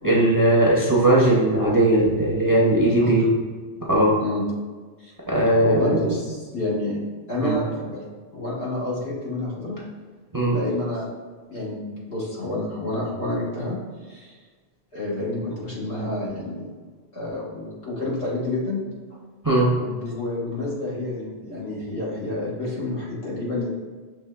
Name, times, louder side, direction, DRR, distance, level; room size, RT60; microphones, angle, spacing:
voice 1, 0.0-3.3 3.9-4.1 5.3-6.0 7.4-7.6 10.3-10.6 19.4-19.7, right 1 dB, 25° right, -4 dB, 0.5 m, -19 dB
voice 2, 2.8-3.3 4.2-4.5 5.0-5.1 5.5-7.0 7.3-8.0 8.3-9.8 10.5-11.1 11.5-13.8 14.0-14.4 14.9-16.7 17.1-18.8 19.1-19.2 19.7-23.7, left 2 dB, 85° left, -7 dB, 1.6 m, -29 dB
6.1 x 3.2 x 2.2 m, 1.4 s
omnidirectional pair, 1.1 m